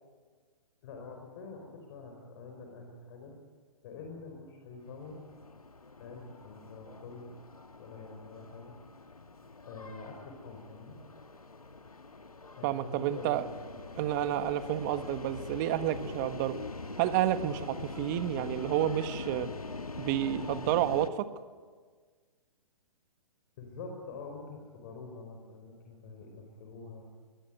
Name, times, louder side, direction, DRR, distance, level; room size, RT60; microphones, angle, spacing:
voice 1, 0.8-3.4 3.8-5.2 6.0-7.3 7.8-8.7 9.7-11.0 12.5-14.4 23.6-27.1, left 4 dB, 40° left, 2 dB, 5.2 m, -46 dB
sound 1, 4.9-21.1, left 3 dB, 80° left, 1.5 m, -43 dB
voice 2, 12.6-13.4 14.0-16.6 17.0-19.5 20.0-21.3, right 12 dB, 30° right, 11 dB, 1.5 m, -30 dB
24.5 x 22.0 x 9.5 m, 1.5 s
figure-of-eight pair, 125°, 19 cm